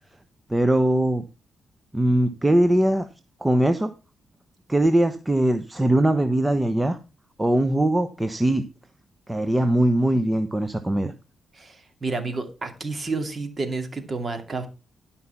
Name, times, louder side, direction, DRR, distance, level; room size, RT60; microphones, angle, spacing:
voice 1, 0.5-1.2 1.9-3.1 3.4-3.9 4.7-7.0 7.4-8.6 9.3-11.1, right 1 dB, 15° right, 9 dB, 0.9 m, -21 dB
voice 2, 11.5-14.7, right 3 dB, 35° right, 7 dB, 2.4 m, -30 dB
12.0 x 5.7 x 5.8 m, 0.30 s
cardioid pair, 75°, 0 cm